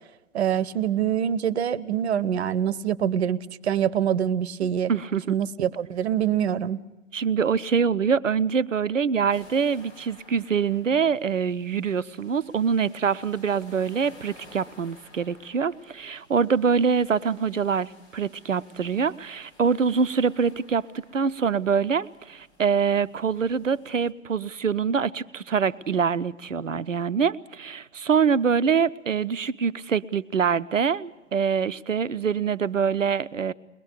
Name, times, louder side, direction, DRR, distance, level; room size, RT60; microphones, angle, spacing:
voice 1, 0.3-4.9 5.3-6.8, right 9 dB, 60° right, 20 dB, 0.9 m, -25 dB
voice 2, 4.9-5.3 7.1-20.9 21.1-33.5, right 6 dB, 85° right, 16 dB, 0.7 m, -24 dB
sound 1, 9.3-24.1, left 1 dB, 60° left, 4.6 m, -55 dB
22.0 x 20.5 x 6.8 m, 1.1 s
figure-of-eight pair, 105°, 37 cm